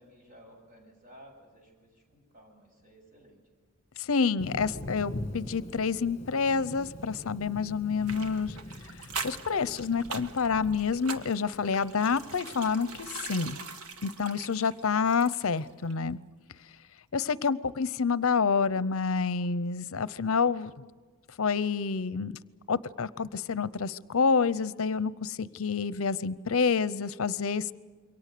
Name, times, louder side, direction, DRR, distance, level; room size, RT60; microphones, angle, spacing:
voice 1, 0.0-3.4 27.5-27.7, equal, 40° right, 1 dB, 8.0 m, -55 dB
voice 2, 4.0-8.5 9.2-13.6 14.0-16.2 17.1-20.7 21.4-22.4 22.7-27.7, left 5 dB, 70° left, 17 dB, 0.7 m, -28 dB
Thunder, 4.4-13.1, left 1 dB, 30° left, 2.1 m, -43 dB
sound 1, 8.0-15.6 15.9-16.0, right 4 dB, 85° right, 1.6 m, -42 dB
27.5 x 23.5 x 6.8 m, 1.4 s
head